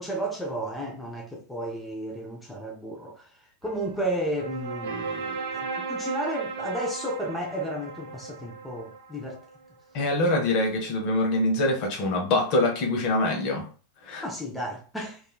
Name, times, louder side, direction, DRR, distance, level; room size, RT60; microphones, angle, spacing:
voice 1, 0.0-3.3 3.6-9.4 14.2-15.2, right 1 dB, 5° left, 0.5 m, -33 dB
sound 1, 3.6-9.6, right 4 dB, 65° right, 0.5 m, -36 dB
voice 2, 9.9-13.7 14.0-14.2, left 2 dB, 40° left, 0.7 m, -24 dB
2.9 x 2.3 x 2.2 m
figure-of-eight pair, 90°, 0 cm